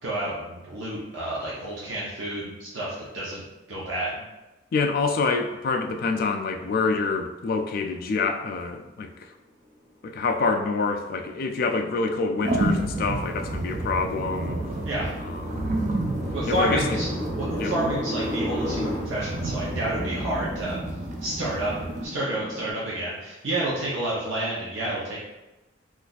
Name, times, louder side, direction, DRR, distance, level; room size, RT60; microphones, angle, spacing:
voice 1, 0.0-4.2 14.8-15.1 16.3-17.1 17.3-20.8 21.2-21.7 22.0-25.2, right 1 dB, 75° right, -7 dB, 0.7 m, -30 dB
voice 2, 4.7-9.3 10.0-14.6 15.2-15.9 16.5-17.0 17.6-17.8, left 4 dB, 50° left, 5 dB, 0.3 m, -26 dB
sound 1, 11.2-22.7, left 1 dB, 10° left, 1.0 m, -35 dB
sound 2, 12.4-22.1, right 2 dB, 40° right, 0.4 m, -30 dB
2.4 x 2.4 x 4.0 m, 1.0 s
head